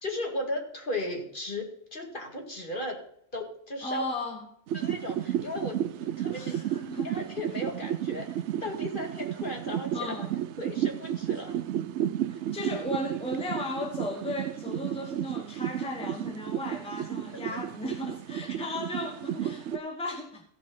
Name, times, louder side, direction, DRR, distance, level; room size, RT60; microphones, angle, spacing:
voice 1, 0.0-3.0 3.3-4.0 4.7-6.7 7.0-10.1 10.6-11.6, left 1 dB, 40° left, 2.3 m, -36 dB
voice 2, 3.8-4.5 6.3-7.3 9.9-10.3 12.3-20.4, left 1 dB, 5° left, 1.2 m, -35 dB
sound 1, 4.7-19.8, right 11 dB, 65° right, 0.8 m, -33 dB
15.5 x 5.2 x 5.4 m
omnidirectional pair, 1.4 m